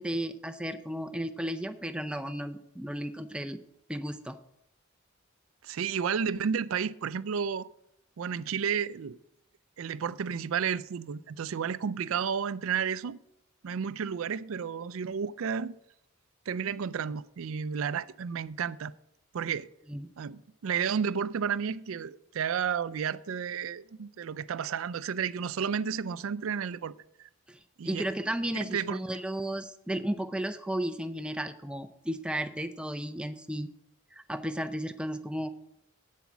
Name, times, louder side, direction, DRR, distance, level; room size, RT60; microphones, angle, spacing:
voice 1, 0.0-3.6 3.9-4.4 19.9-20.1 27.5-27.6 27.8-33.7 34.1-35.5, right 1 dB, 5° right, 0.5 m, -34 dB
voice 2, 5.6-7.7 8.2-9.2 9.8-13.2 13.6-15.7 16.5-18.9 19.3-19.7 20.2-26.9 27.2-27.3 27.8-28.1 28.5-29.0, right 7 dB, 80° right, 0.4 m, -32 dB
8.4 x 7.1 x 6.0 m
head